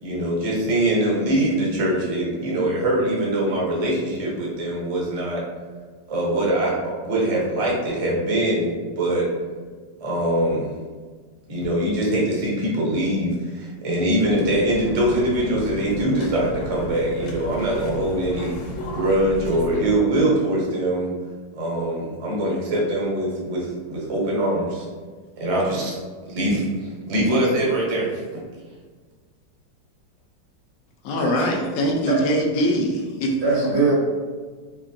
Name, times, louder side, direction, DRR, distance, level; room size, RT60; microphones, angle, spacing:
voice 1, 0.0-5.4 6.1-9.3 10.0-10.7 11.5-18.5 18.9-21.1 21.5-24.8 25.4-26.0 26.2-28.1, right 1 dB, 30° right, -4 dB, 0.6 m, -23 dB
sound 1, 14.2-20.0, equal, 85° left, 1.4 m, -33 dB
voice 2, 31.0-33.4, equal, 65° left, 0 dB, 0.9 m, -22 dB
voice 3, 33.4-33.9, right 3 dB, 75° right, -7 dB, 2.2 m, -22 dB
4.3 x 2.9 x 2.7 m, 1.5 s
omnidirectional pair, 2.0 m